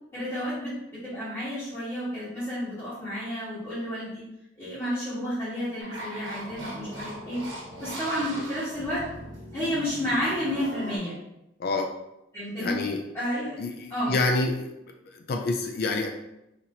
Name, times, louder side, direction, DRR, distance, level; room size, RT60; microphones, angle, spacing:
voice 1, 0.1-0.7 1.0-4.2 4.6-7.4 7.8-9.0 9.5-11.2 12.3-12.7 13.1-14.2, equal, 15° left, -13 dB, 1.3 m, -31 dB
sound 1, 5.8-11.0, right 1 dB, 80° right, 1.1 m, -39 dB
voice 2, 11.6-11.9 12.6-13.0 13.6-14.7 15.1-16.1, left 3 dB, 50° left, 3 dB, 0.3 m, -27 dB
4.2 x 2.9 x 2.7 m, 0.88 s
head